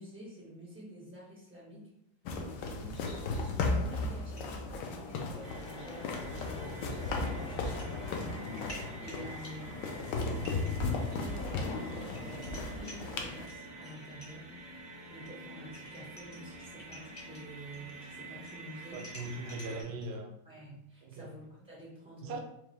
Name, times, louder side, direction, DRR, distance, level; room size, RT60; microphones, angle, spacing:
voice 1, 0.0-1.8 2.4-14.5 15.1-19.0 19.4-19.6 20.4-22.4, equal, 10° right, -6 dB, 0.3 m, -49 dB
sound 1, 2.3-13.5, left 3 dB, 75° left, 1.1 m, -35 dB
sound 2, 4.2-5.5 5.8-6.0 6.3-6.5 7.5-7.9 8.3-14.5 15.3-15.4 15.6-18.0 18.3-20.2, left 1 dB, 35° left, 0.8 m, -52 dB
sound 3, 5.4-19.8, right 2 dB, 90° right, 1.6 m, -48 dB
voice 2, 18.9-20.3 21.0-21.3 22.2-22.4, right 2 dB, 75° right, 2 dB, 1.0 m, -40 dB
4.7 x 2.5 x 3.1 m, 0.80 s
omnidirectional pair, 2.1 m